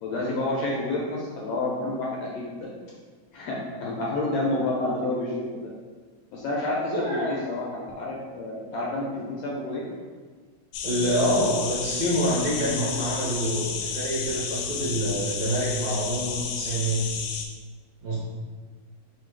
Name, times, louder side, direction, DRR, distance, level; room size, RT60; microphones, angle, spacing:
voice 1, 0.0-2.7 3.3-5.6 6.3-9.8, left 2 dB, 75° left, -4 dB, 1.6 m, -29 dB
voice 2, 6.9-7.4 10.8-17.0 18.0-18.2, equal, 70° right, -5 dB, 1.7 m, -26 dB
sound 1, 10.7-17.5, left 6 dB, 90° left, 2.0 m, -32 dB
4.5 x 2.3 x 4.5 m, 1.4 s
omnidirectional pair, 3.3 m